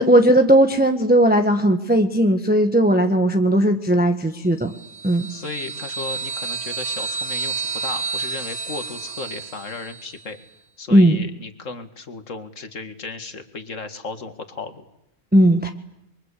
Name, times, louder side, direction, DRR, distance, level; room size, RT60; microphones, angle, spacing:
voice 1, 0.0-4.7 5.0-5.3 10.9-11.2 15.3-15.7, right 1 dB, 5° right, 5 dB, 1.3 m, -17 dB
sound 1, 4.7-10.2, right 4 dB, 25° right, 2.3 m, -30 dB
voice 2, 5.3-10.4 10.8-14.8, left 4 dB, 60° left, 8 dB, 2.3 m, -35 dB
29.0 x 23.5 x 8.4 m, 0.80 s
omnidirectional pair, 1.5 m